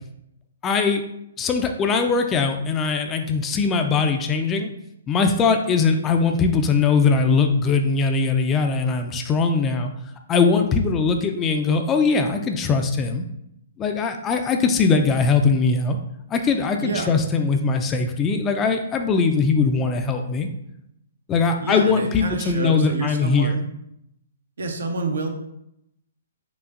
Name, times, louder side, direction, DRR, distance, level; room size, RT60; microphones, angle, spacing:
voice 1, 0.6-1.0 1.4-4.7 5.1-9.9 10.3-13.2 13.8-16.0 16.3-20.5 21.3-23.5, left 4 dB, 20° left, 5 dB, 0.4 m, -21 dB
voice 2, 16.8-17.2 21.6-23.7 24.6-25.3, right 3 dB, 70° right, 4 dB, 0.6 m, -28 dB
4.9 x 2.5 x 2.5 m, 0.79 s
figure-of-eight pair, 125°, 0 cm